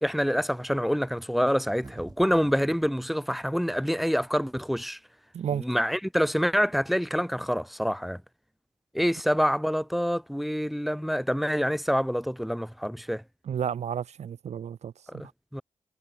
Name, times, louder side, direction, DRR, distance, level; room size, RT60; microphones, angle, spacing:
voice 1, 0.0-5.0 5.5-8.2 8.9-13.2 15.1-15.6, equal, ahead, 0.7 m, -26 dB
sound 1, 1.8-2.9, right 3 dB, 35° right, 2.1 m, -47 dB
voice 2, 5.3-5.6 13.5-15.2, right 8 dB, 70° right, 0.7 m, -32 dB
cardioid pair, 65°, 12 cm